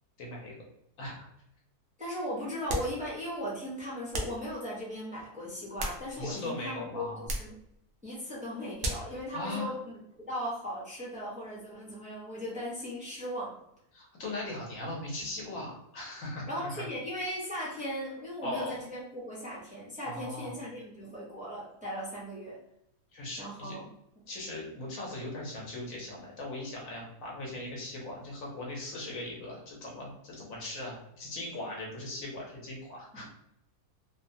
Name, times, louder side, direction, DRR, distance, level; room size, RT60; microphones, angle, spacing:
voice 1, 0.2-0.5 1.0-1.3 6.2-7.3 9.3-9.7 13.9-16.9 17.5-17.7 18.4-18.7 20.1-20.5 23.1-23.7 24.3-33.2, left 2 dB, 60° left, -2 dB, 1.2 m, -39 dB
voice 2, 2.0-7.5 8.0-10.0 10.3-13.5 16.5-22.6 23.4-23.8 33.1-33.2, equal, 10° right, -8 dB, 0.3 m, -37 dB
sound 1, 2.7-3.0 4.1-4.4 5.5-6.4 7.2-7.6 8.8-9.2, right 1 dB, 75° right, 0.5 m, -35 dB
2.8 x 2.2 x 2.6 m, 0.77 s
omnidirectional pair, 1.6 m